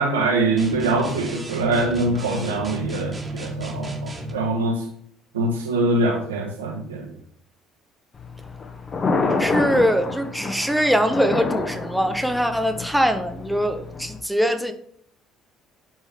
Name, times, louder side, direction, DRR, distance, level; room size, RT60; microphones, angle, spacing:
voice 1, 0.0-4.9 5.3-7.1, right 2 dB, 85° right, 1.4 m, -23 dB
sound 1, 0.6-4.4, right 1 dB, 20° right, 1.6 m, -33 dB
Thunder, 8.1-14.2, left 3 dB, 30° left, 1.6 m, -28 dB
voice 2, 9.4-14.7, equal, ahead, 0.8 m, -22 dB
10.5 x 3.6 x 3.5 m
figure-of-eight pair, 55°, 0 cm